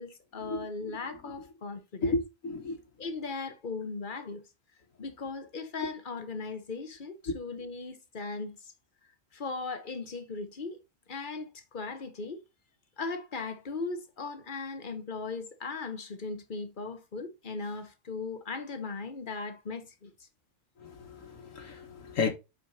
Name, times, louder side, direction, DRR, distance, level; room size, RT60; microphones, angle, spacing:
voice 1, 0.0-2.2 3.0-4.4 5.0-8.7 9.3-10.8 11.1-12.4 13.0-20.1, left 4 dB, 40° left, 1.3 m, -38 dB
voice 2, 2.0-2.8 20.8-22.3, left 3 dB, 85° left, 1.8 m, -32 dB
7.8 x 5.0 x 2.7 m
omnidirectional pair, 1.3 m